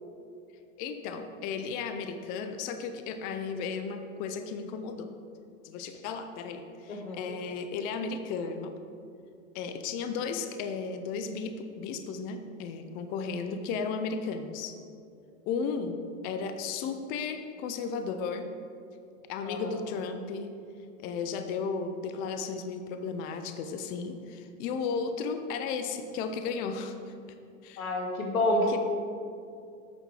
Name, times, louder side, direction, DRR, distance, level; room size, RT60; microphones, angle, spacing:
voice 1, 0.8-5.1 5.6-8.7 9.5-14.7 15.4-16.0 16.2-18.5 19.3-20.5 21.0-26.9 27.6-27.8 28.7-28.8, left 5 dB, 25° left, 7 dB, 0.3 m, -34 dB
voice 2, 6.9-7.4 19.4-19.9 27.8-28.8, left 1 dB, 90° left, 0 dB, 1.9 m, -29 dB
8.3 x 5.8 x 4.7 m, 2.4 s
hypercardioid pair, 120°, 40 cm